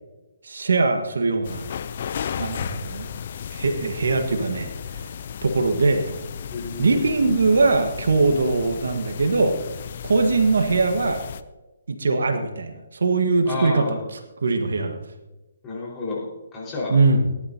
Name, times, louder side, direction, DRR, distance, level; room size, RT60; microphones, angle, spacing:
voice 1, 0.4-1.6 2.4-3.1 3.5-4.7 5.4-6.2 6.8-9.6 10.0-11.2 11.9-14.0 14.4-15.0 16.9-17.2, right 3 dB, 70° right, 6 dB, 1.5 m, -21 dB
sound 1, 1.4-11.4, left 7 dB, 50° left, 0.6 m, -34 dB
voice 2, 6.5-7.0 13.4-14.1 15.6-16.2 16.5-17.0, left 3 dB, 20° left, -5 dB, 5.0 m, -30 dB
18.0 x 11.0 x 2.9 m, 1.1 s
figure-of-eight pair, 145°, 0 cm